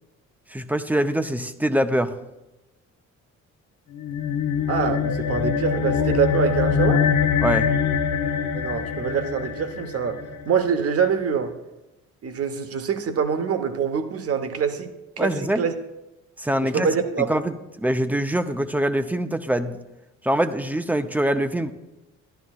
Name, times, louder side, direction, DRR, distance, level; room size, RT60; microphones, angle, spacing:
voice 1, 0.5-2.1 7.4-7.7 15.2-15.6 16.4-16.9 17.2-19.8 20.2-21.7, right 1 dB, 5° right, 9 dB, 0.6 m, -24 dB
sound 1, 3.9-10.6, left 7 dB, 80° left, 0.7 m, -24 dB
voice 2, 4.7-7.0 8.5-10.2 10.5-11.5 12.2-14.9 15.2-15.7 16.6-17.4, right 6 dB, 50° right, 7 dB, 1.0 m, -25 dB
14.0 x 11.5 x 2.4 m, 0.97 s
cardioid pair, 90°, 30 cm